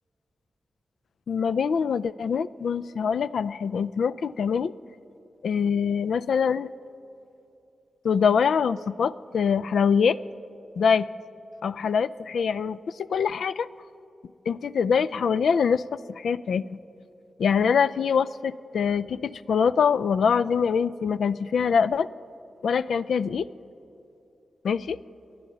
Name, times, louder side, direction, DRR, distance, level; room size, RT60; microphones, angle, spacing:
voice 1, 1.3-4.7 5.4-6.7 8.0-10.2 10.8-11.1 11.6-13.7 14.5-15.8 16.2-16.7 17.4-22.1 22.6-23.5 24.6-25.0, left 6 dB, 80° left, 17 dB, 0.3 m, -24 dB
28.0 x 11.5 x 4.0 m, 2.8 s
wide cardioid pair, 170°, 0 cm